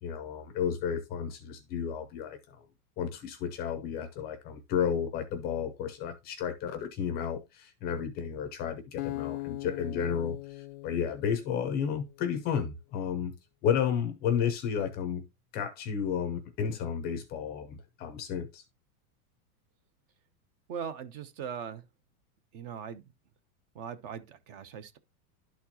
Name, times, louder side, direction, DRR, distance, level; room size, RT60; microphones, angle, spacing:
voice 1, 0.0-2.7 3.0-13.3 13.6-15.2 15.5-18.6, left 7 dB, 20° left, 0.5 m, -32 dB
Acoustic guitar, 9.0-12.2, left 20 dB, 75° left, 0.5 m, -40 dB
voice 2, 20.7-21.9 22.5-23.0 23.7-25.0, right 7 dB, 40° right, 0.8 m, -40 dB
11.5 x 4.4 x 2.8 m
supercardioid pair, 160°, 45 cm